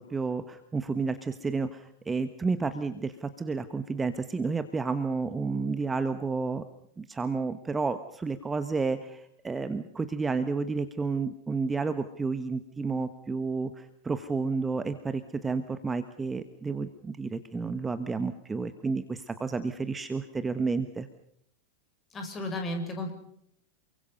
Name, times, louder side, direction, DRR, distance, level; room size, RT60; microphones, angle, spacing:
voice 1, 0.0-6.6 7.0-21.1, right 4 dB, 15° right, 10 dB, 1.3 m, -31 dB
voice 2, 22.1-23.1, left 1 dB, 20° left, 5 dB, 6.3 m, -33 dB
29.0 x 23.5 x 5.5 m, 0.71 s
figure-of-eight pair, 90°, 0 cm